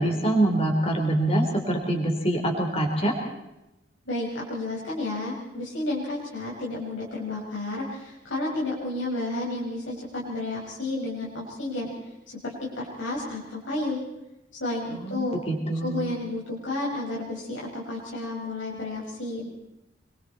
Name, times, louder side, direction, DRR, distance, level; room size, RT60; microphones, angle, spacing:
voice 1, 0.0-3.2 14.9-16.1, right 1 dB, 30° left, 1 dB, 4.3 m, -25 dB
voice 2, 4.1-11.9 12.3-14.0 14.6-15.4 15.8-19.5, left 2 dB, 85° left, -5 dB, 5.8 m, -31 dB
26.5 x 23.5 x 4.4 m, 0.93 s
head